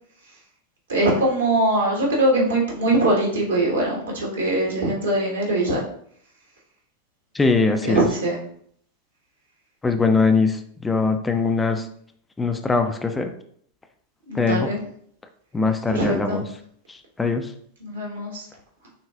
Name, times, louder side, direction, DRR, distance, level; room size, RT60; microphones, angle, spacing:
voice 1, 0.9-5.8 7.8-8.4 14.3-14.8 15.9-16.5 17.8-18.5, right 1 dB, 65° right, -2 dB, 1.3 m, -22 dB
voice 2, 7.3-8.0 9.8-11.9 12.4-13.3 14.3-14.7 15.5-16.4 16.9-17.5, left 4 dB, 10° left, 6 dB, 0.4 m, -21 dB
6.3 x 2.3 x 2.4 m, 0.64 s
figure-of-eight pair, 90°, 0 cm